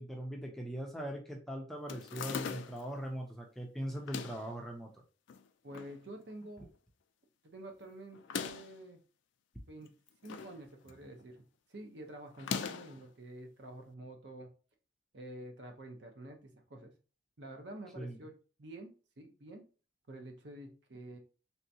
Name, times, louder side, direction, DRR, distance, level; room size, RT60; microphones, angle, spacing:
voice 1, 0.0-4.9 18.0-18.2, equal, ahead, 0 dB, 0.4 m, -40 dB
sound 1, 1.9-2.9 3.9-4.5 5.3-5.9 6.3-6.4 6.6-6.7 8.1-8.8 9.8-10.6 10.9-11.2 12.3-13.0, left 6 dB, 65° left, 0.3 m, -40 dB
voice 2, 5.6-6.7 7.4-9.0 9.7-9.9 10.2-11.4 11.7-14.5 15.1-16.9 17.4-18.3 18.6-18.9 19.2-19.6 20.1-21.2, right 1 dB, 60° right, 4 dB, 0.7 m, -48 dB
3.3 x 2.8 x 2.7 m, 0.35 s
head